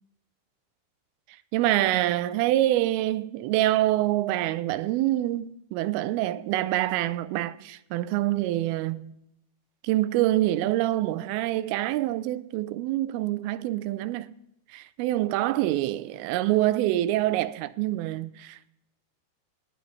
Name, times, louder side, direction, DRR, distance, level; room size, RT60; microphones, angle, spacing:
voice 1, 1.5-9.1 9.8-14.3 14.7-18.7, right 15 dB, 85° right, 2.3 m, -26 dB
19.0 x 9.1 x 3.1 m
omnidirectional pair, 4.5 m